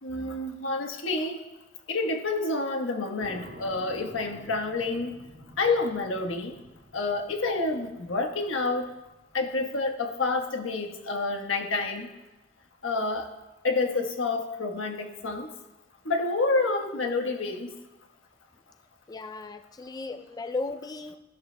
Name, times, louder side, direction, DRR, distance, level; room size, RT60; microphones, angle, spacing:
voice 1, 0.0-1.4 1.9-5.1 5.6-6.5 6.9-8.9 9.3-12.1 12.8-13.3 13.6-15.5 16.0-17.7, left 3 dB, 70° left, 3 dB, 1.3 m, -28 dB
sound 1, 3.2-10.6, equal, 60° right, 1.7 m, -50 dB
voice 2, 19.1-21.2, left 3 dB, 20° left, 9 dB, 0.3 m, -35 dB
14.5 x 12.5 x 2.2 m, 1.0 s
head